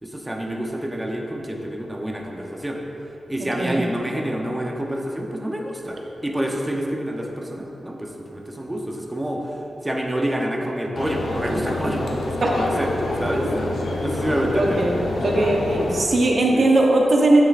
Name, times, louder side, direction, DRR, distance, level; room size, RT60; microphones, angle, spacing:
voice 1, 0.0-2.8 3.3-9.5 9.8-12.9 13.2-13.5 14.0-14.8 16.2-16.7, right 1 dB, 10° right, 0 dB, 0.7 m, -27 dB
sound 1, 10.9-16.1, left 2 dB, 85° left, 0.9 m, -27 dB
voice 2, 14.6-15.0 15.2-17.4, right 2 dB, 50° right, -1 dB, 0.9 m, -19 dB
11.0 x 6.6 x 2.5 m, 2.9 s
wide cardioid pair, 150°, 0 cm